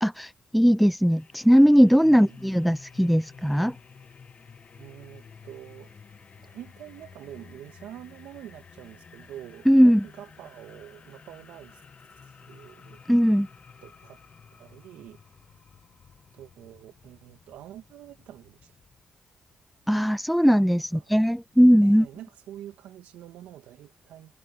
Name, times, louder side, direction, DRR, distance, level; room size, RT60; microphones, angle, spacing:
voice 1, 0.0-3.8 9.7-10.0 13.1-13.5 19.9-22.1, equal, ahead, 0.4 m, -19 dB
sound 1, 1.1-19.0, left 6 dB, 55° left, 1.3 m, -51 dB
voice 2, 2.1-2.4 4.7-5.9 6.4-11.8 12.1-13.0 13.8-14.2 14.5-15.2 16.3-18.8 20.8-21.1 21.8-24.4, right 12 dB, 85° right, 1.9 m, -46 dB
supercardioid pair, 55°, 3 cm